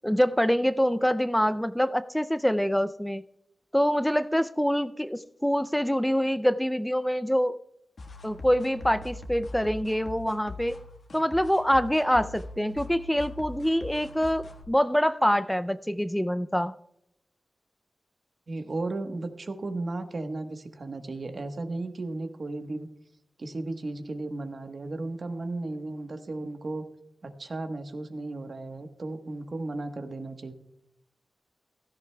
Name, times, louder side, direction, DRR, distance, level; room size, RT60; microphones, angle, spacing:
voice 1, 0.0-3.2 3.7-7.5 8.2-10.8 11.1-16.7, equal, 5° left, 12 dB, 0.4 m, -25 dB
sound 1, 8.0-14.6, left 2 dB, 65° left, 1.5 m, -42 dB
voice 2, 18.5-22.9 23.4-26.9 27.2-30.5, right 2 dB, 55° right, 7 dB, 1.2 m, -35 dB
15.5 x 13.5 x 2.3 m, 0.79 s
wide cardioid pair, 90°, 0 cm